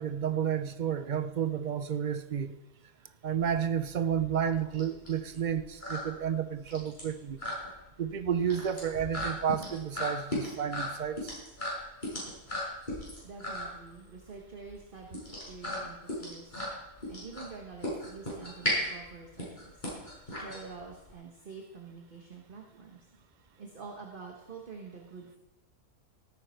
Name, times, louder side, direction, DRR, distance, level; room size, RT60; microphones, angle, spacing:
voice 1, 0.0-2.6 3.2-7.4 8.0-11.4, right 8 dB, 80° right, 11 dB, 0.4 m, -31 dB
sound 1, 3.4-21.1, left 1 dB, 30° left, 6.2 m, -37 dB
voice 2, 13.2-16.5 17.1-19.9 20.3-23.0 23.6-25.4, right 4 dB, 35° right, 1 dB, 1.4 m, -47 dB
17.0 x 9.4 x 4.5 m, 0.96 s
omnidirectional pair, 1.6 m